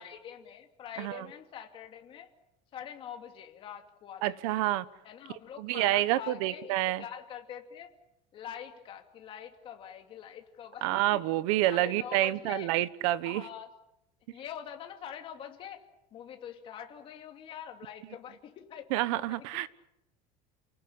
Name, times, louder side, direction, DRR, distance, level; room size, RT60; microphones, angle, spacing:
voice 1, 0.0-2.3 2.7-4.6 5.0-7.9 8.3-11.2 11.6-12.7 13.2-13.7 14.3-15.8 16.1-19.6, left 9 dB, 30° left, 2.6 m, -45 dB
voice 2, 4.2-4.8 5.6-7.0 10.8-13.4 18.9-19.7, right 15 dB, 75° right, 1.2 m, -28 dB
29.0 x 19.0 x 8.8 m
cardioid pair, 180°, 17 cm